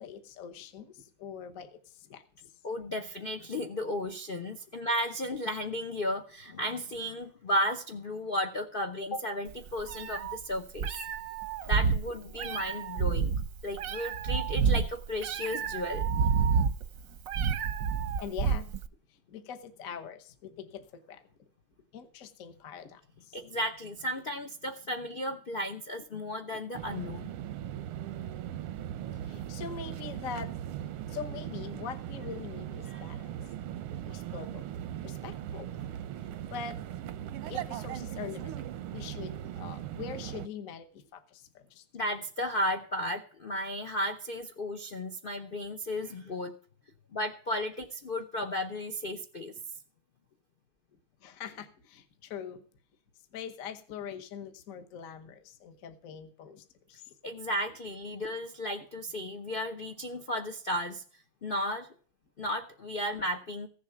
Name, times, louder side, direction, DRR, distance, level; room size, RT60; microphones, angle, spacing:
voice 1, 0.0-2.5 16.4-16.5 18.2-18.7 19.1-21.2 21.9-23.4 29.1-30.5 30.8-33.5 34.1-34.7 35.0-35.7 36.4-36.8 37.5-38.5 38.9-41.8 51.2-52.6 53.3-57.1, left 7 dB, 50° left, 7 dB, 1.3 m, -43 dB
voice 2, 2.6-10.9 11.7-13.3 13.6-16.1 23.3-27.3 32.9-33.0 41.9-46.5 47.1-49.5 57.2-61.0 61.4-61.9 62.4-63.7, equal, 80° left, 7 dB, 0.4 m, -34 dB
Meow, 9.5-18.9, right 6 dB, 60° right, 0.9 m, -29 dB
sound 1, 26.7-40.5, right 11 dB, 90° right, 1.6 m, -39 dB
15.5 x 7.4 x 5.8 m, 0.44 s
omnidirectional pair, 2.3 m